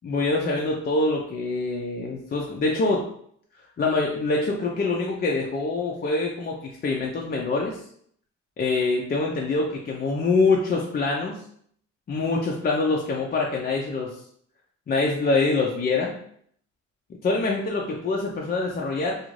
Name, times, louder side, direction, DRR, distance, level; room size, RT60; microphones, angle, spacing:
voice 1, 0.0-3.0 3.8-7.8 8.6-11.4 12.1-14.1 14.9-16.1 17.2-19.2, left 3 dB, 30° left, -2 dB, 0.4 m, -25 dB
2.4 x 2.4 x 3.1 m, 0.65 s
cardioid pair, 90°, 30 cm